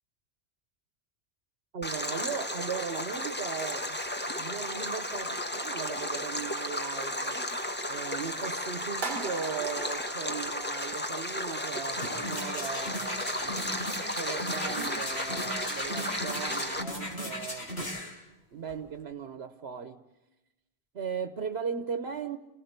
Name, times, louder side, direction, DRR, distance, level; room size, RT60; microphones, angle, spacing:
voice 1, 1.7-4.0 4.3-7.4 7.9-17.7 18.5-20.1 20.9-22.4, right 6 dB, 75° right, 1.3 m, -38 dB
Stream, 1.8-16.8, left 1 dB, 10° left, 1.2 m, -34 dB
sound 1, 9.0-11.3, right 3 dB, 45° right, 1.4 m, -40 dB
sound 2, 11.9-18.1 18.7-18.8, left 1 dB, 90° left, 5.4 m, -37 dB
30.0 x 18.5 x 8.1 m
omnidirectional pair, 1.1 m